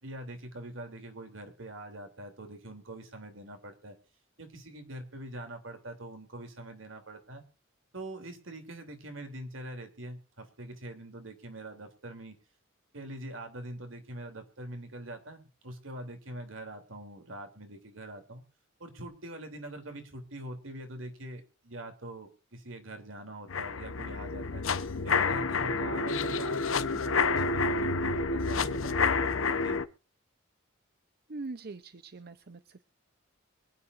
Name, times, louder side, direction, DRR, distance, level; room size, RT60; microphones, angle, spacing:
voice 1, 0.0-3.9 4.4-7.4 7.9-12.3 12.9-18.4 18.8-24.6 25.0-29.0 29.2-29.3 29.6-29.8, right 1 dB, 75° right, 6 dB, 3.1 m, -44 dB
sound 1, 23.5-29.8, left 4 dB, 80° left, 0.9 m, -29 dB
voice 2, 31.3-32.8, right 3 dB, 50° right, 12 dB, 0.7 m, -42 dB
24.5 x 9.8 x 2.6 m, 0.33 s
head